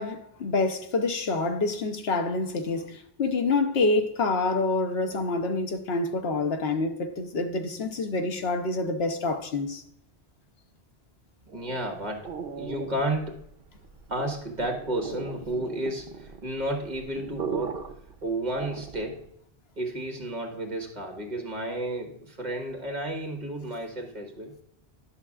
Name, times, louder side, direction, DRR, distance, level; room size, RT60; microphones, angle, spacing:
voice 1, 0.0-9.8, left 3 dB, 70° left, 1.0 m, -27 dB
voice 2, 11.5-12.3 12.6-13.4 14.1-17.9 18.2-19.3 19.8-24.5, right 1 dB, 45° right, 1.4 m, -32 dB
sound 1, 11.5-19.3, right 6 dB, 65° right, 0.9 m, -39 dB
11.0 x 6.2 x 2.4 m
omnidirectional pair, 1.1 m